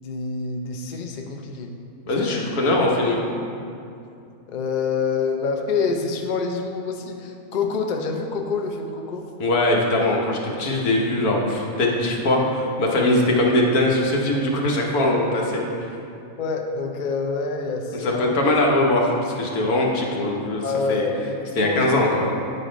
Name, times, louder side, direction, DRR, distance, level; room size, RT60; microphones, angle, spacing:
voice 1, 0.0-1.7 2.2-2.4 4.5-9.2 13.0-13.3 16.4-18.4 20.6-22.0, left 4 dB, 50° left, 3 dB, 0.5 m, -27 dB
voice 2, 2.1-3.2 9.4-15.9 17.9-20.6 20.9-21.0 21.6-22.3, left 1 dB, 85° left, -1 dB, 1.5 m, -21 dB
8.9 x 4.1 x 5.0 m, 2.6 s
omnidirectional pair, 1.5 m